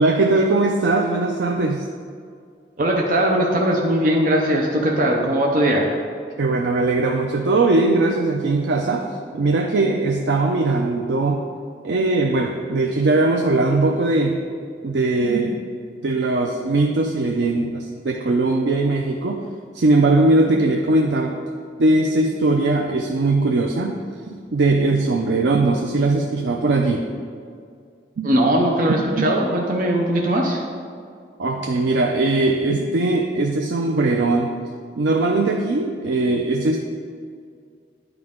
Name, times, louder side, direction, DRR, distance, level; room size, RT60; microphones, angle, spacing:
voice 1, 0.0-1.8 6.4-9.1 9.3-11.4 11.8-14.4 14.8-15.6 16.0-19.4 19.7-21.4 21.8-24.0 24.3-27.1 28.2-28.3 28.9-29.3 31.4-34.5 35.0-36.8, right 2 dB, 90° right, 2 dB, 0.5 m, -20 dB
voice 2, 2.8-5.9 28.2-30.6, right 1 dB, 50° right, -1 dB, 0.7 m, -19 dB
9.7 x 4.7 x 3.7 m, 2.2 s
head